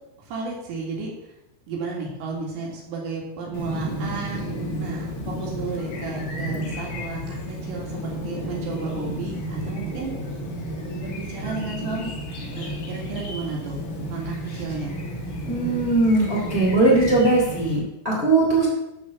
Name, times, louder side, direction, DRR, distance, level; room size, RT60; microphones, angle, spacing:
voice 1, 0.3-1.1 1.7-4.5 4.8-10.1 11.0-12.1 12.5-13.8 14.1-14.9, right 4 dB, 65° right, -2 dB, 5.0 m, -32 dB
Chirp tweet, 3.5-17.8, equal, 45° left, 3.3 m, -32 dB
voice 2, 15.5-18.7, right 2 dB, 15° right, -4 dB, 3.3 m, -20 dB
13.5 x 5.5 x 7.3 m, 0.87 s
omnidirectional pair, 5.4 m